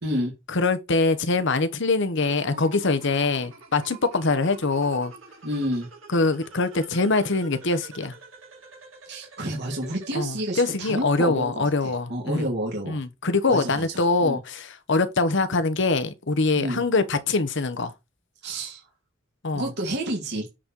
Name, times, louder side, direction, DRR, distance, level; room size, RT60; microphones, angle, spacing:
voice 1, 0.0-0.3 5.4-5.9 9.0-13.0 13.5-13.9 14.2-14.4 16.6-16.8 18.4-18.8 19.5-20.5, right 1 dB, 55° right, 2.4 m, -29 dB
voice 2, 0.5-5.1 6.1-8.1 10.1-12.5 12.9-17.9 19.4-19.7, left 3 dB, 60° left, 1.1 m, -23 dB
sound 1, 2.2-10.2, right 3 dB, 75° right, 2.8 m, -46 dB
8.6 x 4.2 x 4.4 m
head